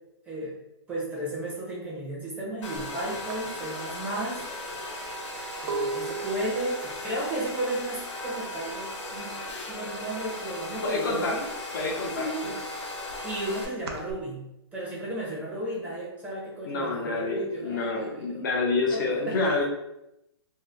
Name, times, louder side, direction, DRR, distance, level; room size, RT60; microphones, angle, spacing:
voice 1, 0.9-4.4 5.6-9.3 9.7-11.4 12.2-12.6 13.2-14.5 14.7-18.4 18.9-19.4, right 1 dB, 10° right, -6 dB, 0.7 m, -34 dB
Domestic sounds home sounds, 2.6-13.7, left 1 dB, 85° left, 0.8 m, -37 dB
sound 1, 2.9-3.0 3.3-9.0 9.2-9.7 10.0-11.2 11.6-14.1, right 4 dB, 65° right, 0.5 m, -38 dB
voice 2, 10.8-11.4 11.7-12.5 16.6-19.6, left 3 dB, 45° left, 0 dB, 0.6 m, -28 dB
2.7 x 2.2 x 3.3 m, 0.86 s
hypercardioid pair, 160°, 15 cm